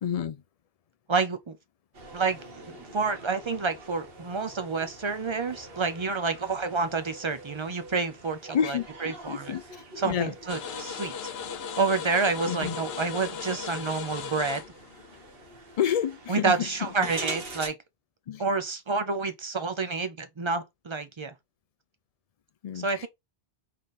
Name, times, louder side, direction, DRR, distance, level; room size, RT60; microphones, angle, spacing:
voice 1, 0.0-0.4 8.5-8.9 9.3-9.6 10.0-10.3 12.5-12.8 15.8-16.5 18.3-18.4 22.6-22.9, left 9 dB, 55° left, 0.4 m, -28 dB
voice 2, 1.1-1.6 2.1-9.5 10.0-11.3 11.8-14.6 16.3-17.8 18.4-21.3 22.7-23.1, right 4 dB, 40° right, 0.4 m, -29 dB
sound 1, 1.9-17.7, right 2 dB, 65° right, 1.5 m, -44 dB
sound 2, 10.5-15.7, left 7 dB, 75° left, 0.9 m, -37 dB
3.8 x 3.3 x 4.0 m
omnidirectional pair, 1.1 m